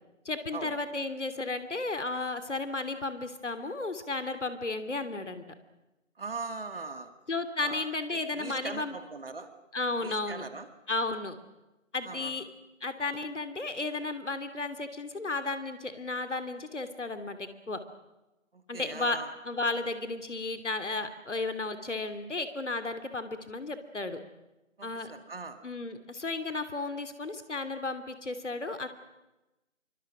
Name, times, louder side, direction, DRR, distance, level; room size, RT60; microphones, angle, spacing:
voice 1, 0.2-5.4 7.3-9.0 9.7-10.4 10.9-11.4 11.9-12.4 12.8-17.8 18.7-19.2 19.4-24.2 24.8-25.1 25.6-28.9, left 3 dB, 65° left, 9 dB, 3.0 m, -33 dB
voice 2, 6.2-7.1 7.6-7.9 8.1-9.5 10.0-10.7 12.0-12.4 18.5-19.3 24.8-25.6, right 4 dB, 45° right, 9 dB, 2.1 m, -40 dB
27.5 x 24.0 x 6.2 m, 1.0 s
figure-of-eight pair, 160°, 39 cm